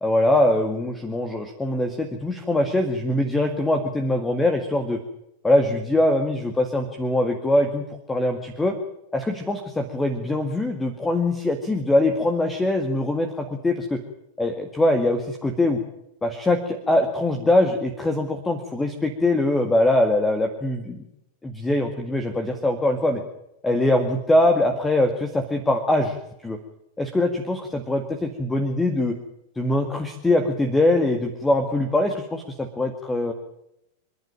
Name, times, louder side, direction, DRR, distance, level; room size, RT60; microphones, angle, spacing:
voice 1, 0.0-5.0 5.4-8.8 9.1-14.0 14.4-15.8 16.2-21.0 21.4-23.2 23.6-26.2 26.4-26.6 27.0-29.2 29.6-33.3, left 1 dB, 10° left, 6 dB, 2.1 m, -22 dB
27.5 x 11.5 x 9.1 m, 0.84 s
figure-of-eight pair, 90°, 0 cm